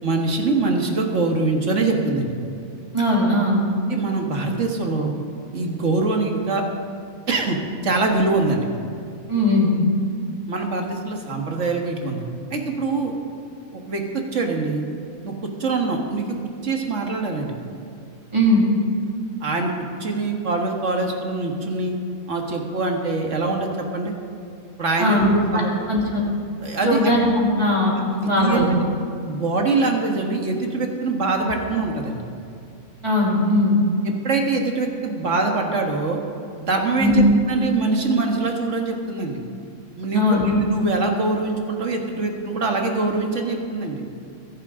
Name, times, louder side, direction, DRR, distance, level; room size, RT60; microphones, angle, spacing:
voice 1, 0.0-2.3 3.9-5.1 5.5-6.6 7.3-7.6 7.8-8.7 10.5-12.2 12.5-13.1 13.7-14.9 15.2-15.3 15.6-16.4 16.6-17.5 19.4-19.7 20.0-22.0 22.3-24.1 24.8-25.7 26.6-27.1 28.1-28.7 29.3-32.2 34.2-36.2 36.6-39.4 40.0-44.0, right 3 dB, 60° right, 2 dB, 1.9 m, -23 dB
voice 2, 2.9-3.6 9.3-9.7 18.3-18.6 25.0-25.6 25.9-26.2 26.8-27.9 28.2-28.7 33.0-33.7 37.0-37.2 40.1-40.5, left 1 dB, 20° right, -5 dB, 3.1 m, -19 dB
22.0 x 11.0 x 3.7 m, 2.6 s
omnidirectional pair, 1.5 m